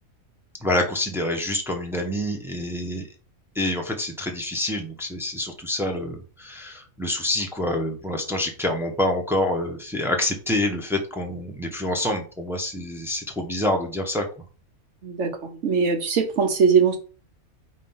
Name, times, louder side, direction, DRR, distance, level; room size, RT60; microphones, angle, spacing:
voice 1, 0.6-3.0 3.5-14.2, left 1 dB, ahead, 2 dB, 0.9 m, -27 dB
voice 2, 15.6-17.0, right 6 dB, 60° right, 5 dB, 1.3 m, -20 dB
5.4 x 3.1 x 5.6 m, 0.37 s
omnidirectional pair, 1.4 m